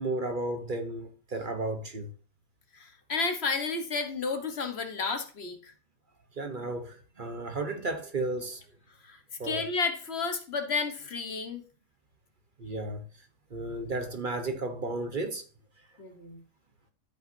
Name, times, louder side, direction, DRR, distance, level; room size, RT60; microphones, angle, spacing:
voice 1, 0.0-2.1 6.4-8.6 9.4-9.6 12.6-13.0 13.5-15.4, right 2 dB, 45° right, 1.1 m, -33 dB
voice 2, 2.8-5.7 9.1-9.2 9.4-11.6 16.0-16.4, left 4 dB, 60° left, 1.4 m, -32 dB
13.0 x 5.6 x 2.7 m
omnidirectional pair, 1.3 m